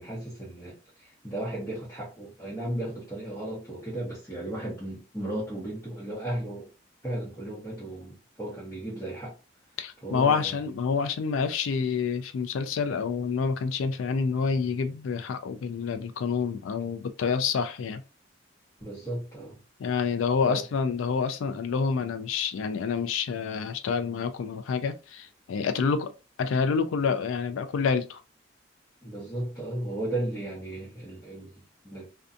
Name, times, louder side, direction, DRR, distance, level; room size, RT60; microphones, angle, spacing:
voice 1, 0.0-6.7 7.0-9.3 10.0-10.6 18.8-19.6 20.4-20.6 29.0-31.5 31.8-32.1, right 1 dB, 10° left, 0.9 m, -35 dB
voice 2, 9.8-18.0 19.8-26.1 26.4-28.2, left 5 dB, 85° left, 0.3 m, -28 dB
2.6 x 2.2 x 2.5 m
head